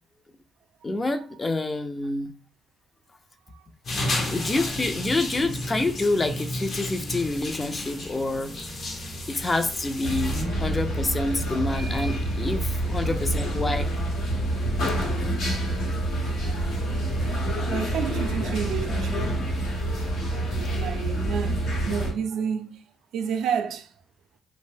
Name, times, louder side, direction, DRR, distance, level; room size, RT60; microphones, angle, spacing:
voice 1, 0.8-2.3 4.2-8.5 9.3-13.9, left 2 dB, 25° left, 0.4 m, -27 dB
sound 1, 3.8-10.4, left 1 dB, 50° left, 0.7 m, -32 dB
sound 2, 10.0-22.1, right 1 dB, 80° left, 0.9 m, -27 dB
voice 2, 16.2-16.7 17.0-19.3 20.2-22.8 23.1-23.9, right 7 dB, 80° right, 0.3 m, -31 dB
2.5 x 2.0 x 3.3 m
cardioid pair, 90°, 0 cm